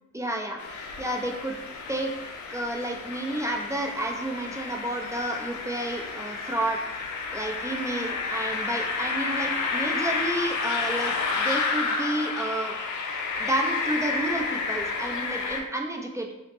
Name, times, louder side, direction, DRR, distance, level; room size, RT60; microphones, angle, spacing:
voice 1, 0.1-0.6 1.0-1.6 1.9-2.1 2.5-6.8 7.3-12.8 13.0-16.3, right 1 dB, 10° right, 1 dB, 0.4 m, -31 dB
sound 1, 0.6-15.6, left 4 dB, 65° left, 0.5 m, -30 dB
3.1 x 2.0 x 2.9 m, 0.90 s
cardioid pair, 65°, 33 cm